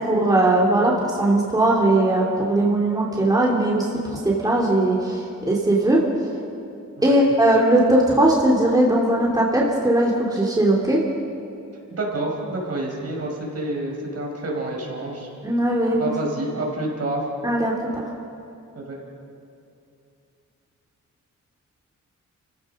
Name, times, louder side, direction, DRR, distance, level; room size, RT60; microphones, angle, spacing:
voice 1, 0.1-6.0 7.0-11.0 15.4-16.0 17.4-18.0, right 1 dB, 10° right, -3 dB, 2.9 m, -19 dB
voice 2, 11.9-15.3 16.0-17.2 18.7-19.0, right 2 dB, 55° right, -1 dB, 5.1 m, -28 dB
28.5 x 16.0 x 6.5 m, 2.6 s
wide cardioid pair, 120°, 30 cm